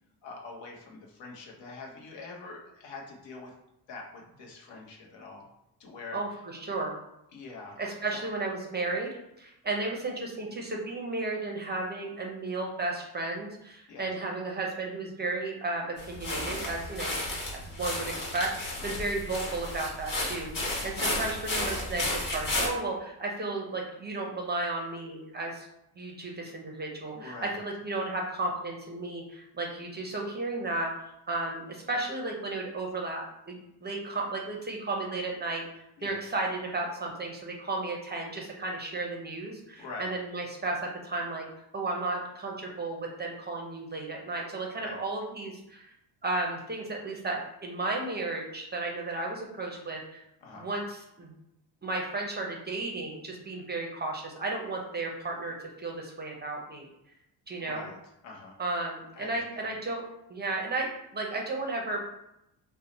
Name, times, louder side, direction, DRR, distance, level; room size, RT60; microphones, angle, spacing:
voice 1, 0.2-3.5 3.9-5.5 5.8-6.2 7.3-7.8 8.1-8.2 13.9-14.1 18.8-19.0 27.1-27.6 36.0-36.2 39.8-40.1 44.8-45.0 50.4-50.7 57.6-58.0 58.2-58.6 59.1-59.4, left 3 dB, 70° left, -1 dB, 0.9 m, -44 dB
voice 2, 6.1-7.0 7.8-9.1 9.4-17.2 17.5-25.7 26.0-30.9 31.3-35.6 36.0-41.5 41.7-45.9 46.2-50.2 50.5-51.3 51.8-56.9 57.5-57.9 58.6-62.0, right 2 dB, 25° right, 0 dB, 0.5 m, -34 dB
sound 1, 16.0-22.7, left 1 dB, 45° left, 1.2 m, -33 dB
2.7 x 2.0 x 4.0 m, 0.85 s
cardioid pair, 95°, 46 cm